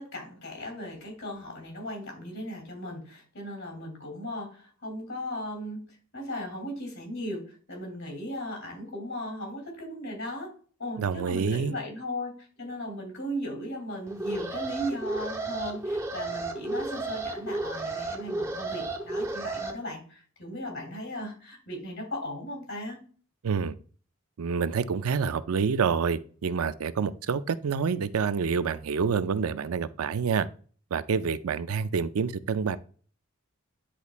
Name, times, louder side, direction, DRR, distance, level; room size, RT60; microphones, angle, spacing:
voice 1, 0.0-5.9 6.1-10.5 10.8-23.0, equal, 70° left, 3.0 m, -37 dB
voice 2, 11.0-11.7 23.4-23.7 24.4-30.5 30.9-32.8, right 6 dB, 85° right, 0.4 m, -27 dB
Alarm, 14.1-19.7, right 2 dB, 15° right, 0.7 m, -33 dB
10.0 x 4.0 x 2.4 m
head